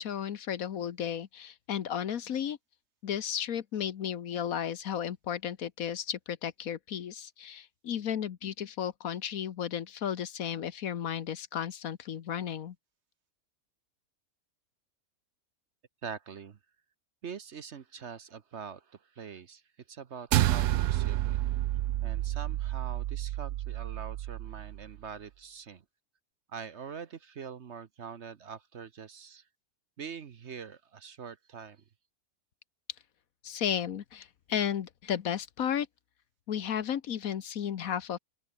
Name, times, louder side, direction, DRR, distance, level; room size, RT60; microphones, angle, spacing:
voice 1, 0.0-2.6 3.0-12.7 33.4-35.9 36.5-38.2, left 9 dB, 70° left, 1.4 m, -34 dB
voice 2, 16.0-16.6 17.2-19.6 19.9-21.4 22.0-25.8 26.5-29.4 30.0-31.8, right 6 dB, 50° right, 1.2 m, -44 dB
sound 1, 20.3-24.9, right 14 dB, 70° right, 0.8 m, -30 dB
omnidirectional pair, 1.6 m